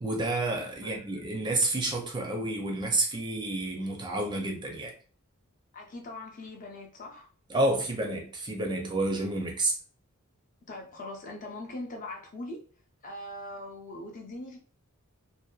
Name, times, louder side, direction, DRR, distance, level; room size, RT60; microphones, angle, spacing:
voice 1, 0.0-4.9 7.5-9.8, right 2 dB, 20° right, 0.5 m, -29 dB
voice 2, 5.7-7.3 10.7-12.6 13.0-14.6, left 2 dB, 40° left, 0.5 m, -41 dB
2.6 x 2.2 x 2.3 m
head